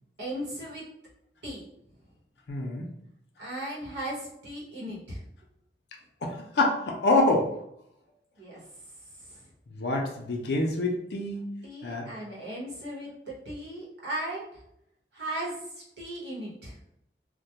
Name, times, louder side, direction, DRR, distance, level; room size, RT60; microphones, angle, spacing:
voice 1, 0.2-0.9 1.4-1.7 3.4-5.2 8.4-8.6 9.2-9.5 11.6-14.6 15.1-16.8, right 1 dB, 75° right, -5 dB, 0.9 m, -37 dB
voice 2, 2.5-2.9 6.2-7.5 9.8-11.5 11.8-12.1, left 2 dB, 65° left, 1 dB, 0.4 m, -26 dB
2.2 x 2.1 x 2.8 m, 0.77 s
head